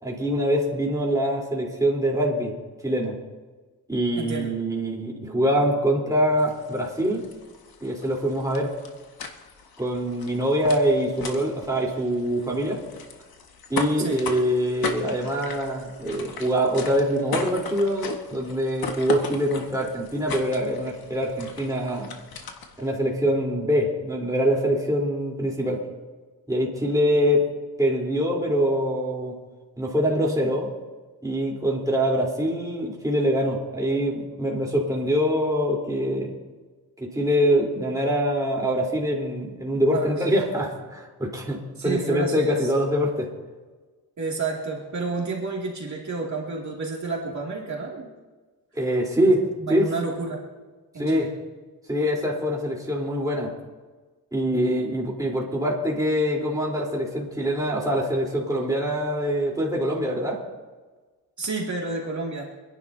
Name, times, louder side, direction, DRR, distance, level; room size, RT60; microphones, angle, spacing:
voice 1, 0.0-2.5 2.8-3.2 3.9-7.3 7.8-8.7 9.8-12.8 13.7-22.1 22.8-25.8 26.5-27.4 27.8-29.4 29.8-30.7 31.2-36.4 37.0-43.3 48.7-49.4 49.7-49.9 51.0-51.3 51.9-53.5 54.3-60.4, equal, 10° right, -3 dB, 3.7 m, -24 dB
voice 2, 4.2-4.5 14.0-14.2 39.9-40.4 41.8-42.7 44.2-48.1 49.2-49.3 49.6-50.5 50.9-51.3 61.4-62.5, right 3 dB, 50° right, -2 dB, 2.5 m, -30 dB
sound 1, 6.4-22.9, left 4 dB, 70° left, 1.7 m, -37 dB
27.0 x 11.0 x 2.8 m, 1.3 s
cardioid pair, 80°, 37 cm